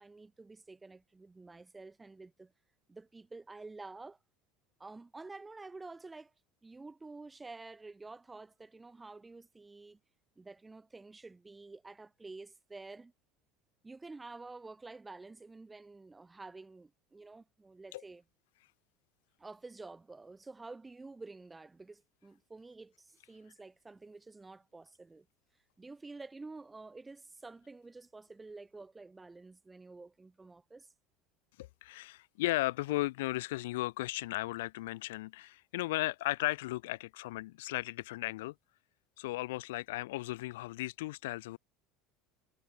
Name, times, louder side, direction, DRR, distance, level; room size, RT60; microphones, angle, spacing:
voice 1, 0.0-2.5 2.9-4.2 4.8-6.3 6.6-10.0 10.4-13.1 13.8-18.2 19.4-25.3 25.8-30.9, right 3 dB, 15° right, 1.9 m, -50 dB
voice 2, 31.6-38.5 39.2-41.6, left 18 dB, 80° left, 0.9 m, -36 dB
hypercardioid pair, 85°, 0 cm